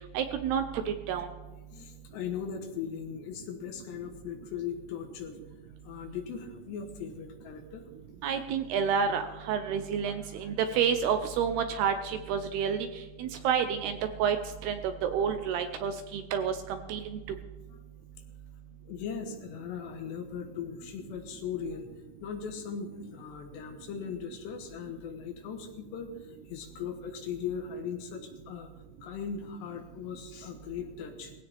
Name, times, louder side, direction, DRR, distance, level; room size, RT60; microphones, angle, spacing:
voice 1, 0.1-1.3 8.2-12.9 13.2-14.4 14.6-17.2, right 7 dB, 80° right, 8 dB, 2.5 m, -29 dB
voice 2, 1.5-5.4 5.8-7.9 18.8-21.9 22.2-28.7 29.0-31.3, left 7 dB, 75° left, 4 dB, 3.3 m, -39 dB
18.0 x 16.5 x 3.5 m, 1.2 s
omnidirectional pair, 5.2 m